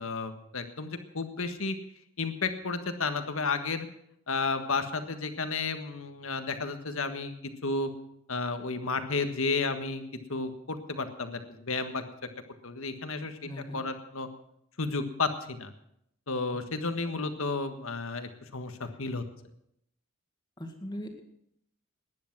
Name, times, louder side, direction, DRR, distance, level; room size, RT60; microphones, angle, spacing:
voice 1, 0.0-1.7 2.2-3.9 4.3-7.9 8.3-10.0 10.3-12.0 12.6-14.3 14.8-15.7 16.3-19.2, left 4 dB, 70° left, 8 dB, 1.5 m, -32 dB
voice 2, 13.4-13.8 17.1-17.2 20.6-21.2, equal, 20° left, 4 dB, 2.0 m, -40 dB
20.0 x 10.0 x 6.1 m, 0.74 s
head